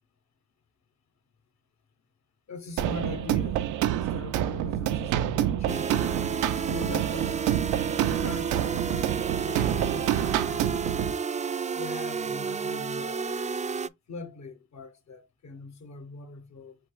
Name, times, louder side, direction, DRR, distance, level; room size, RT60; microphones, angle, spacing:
voice 1, 2.5-5.9 6.7-7.4 8.0-11.0 11.7-13.4 13.8-16.8, left 3 dB, 65° left, 1.7 m, -41 dB
sound 1, 2.8-11.1, right 12 dB, 90° right, 0.5 m, -28 dB
sound 2, 5.7-13.9, right 5 dB, 25° right, 0.4 m, -31 dB
4.4 x 2.4 x 4.7 m
supercardioid pair, 55°, 30 cm